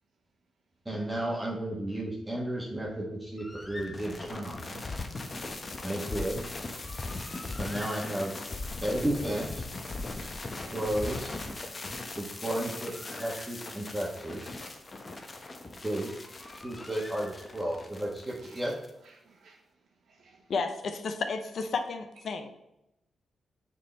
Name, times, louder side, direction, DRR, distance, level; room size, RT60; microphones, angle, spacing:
voice 1, 0.8-4.8 5.8-6.4 7.6-8.3 8.8-9.7 10.7-11.3 12.2-14.6 15.8-16.1 16.6-18.7, right 1 dB, 15° right, -3 dB, 1.3 m, -33 dB
Bird, 3.4-4.5 6.6-8.7 12.1-14.0 16.0-17.9, left 2 dB, 20° left, 0.6 m, -49 dB
sound 1, 3.6-18.9, left 2 dB, 40° left, 0.9 m, -39 dB
voice 2, 18.4-18.8 19.0-20.5, right 3 dB, 75° right, 0 dB, 0.9 m, -60 dB
voice 3, 20.5-22.5, left 4 dB, 70° left, 7 dB, 0.7 m, -32 dB
6.5 x 3.7 x 4.3 m, 0.88 s
cardioid pair, 60°, 0 cm